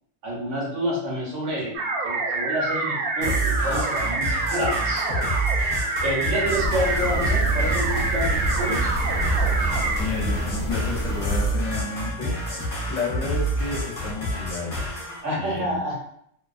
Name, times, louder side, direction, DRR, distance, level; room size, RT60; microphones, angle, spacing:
voice 1, 0.2-1.7 2.0-5.0 6.0-8.9 15.2-16.0, equal, 60° right, -4 dB, 1.1 m, -28 dB
sound 1, 1.7-10.0, right 3 dB, 80° right, 1.0 m, -26 dB
sound 2, 3.2-15.2, right 1 dB, 45° left, 0.8 m, -28 dB
sound 3, 6.5-11.5, right 1 dB, 40° right, 0.8 m, -28 dB
voice 2, 10.0-14.9 15.3-15.8, left 3 dB, 65° left, -4 dB, 1.1 m, -31 dB
2.6 x 2.2 x 2.4 m, 0.69 s
omnidirectional pair, 1.5 m